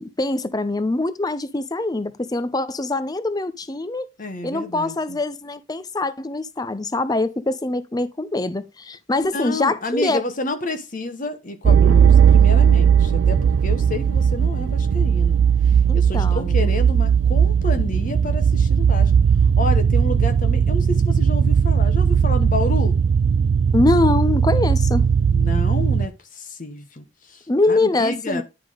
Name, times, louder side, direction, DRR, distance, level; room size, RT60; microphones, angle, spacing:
voice 1, 0.0-4.1 4.4-10.2 15.9-16.7 23.7-25.1 27.5-28.4, left 2 dB, 20° left, 0.6 m, -23 dB
voice 2, 4.2-5.2 9.3-19.1 19.6-22.9 25.3-28.4, left 2 dB, 40° left, 1.0 m, -30 dB
sound 1, 11.6-26.1, right 7 dB, 80° right, 0.4 m, -17 dB
10.5 x 3.6 x 4.9 m
head